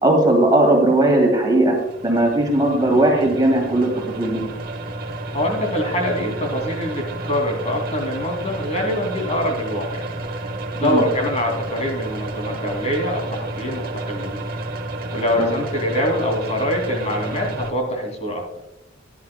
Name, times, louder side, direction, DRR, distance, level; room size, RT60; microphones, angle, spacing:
voice 1, 0.0-4.4 10.8-11.1 15.4-15.5, right 1 dB, 20° right, 1 dB, 2.6 m, -18 dB
sound 1, 1.8-17.7, right 2 dB, 45° right, 1.2 m, -31 dB
voice 2, 5.3-10.0 10.7-14.4 15.1-18.4, left 1 dB, 30° left, 2 dB, 2.5 m, -24 dB
16.0 x 11.5 x 2.2 m, 0.85 s
head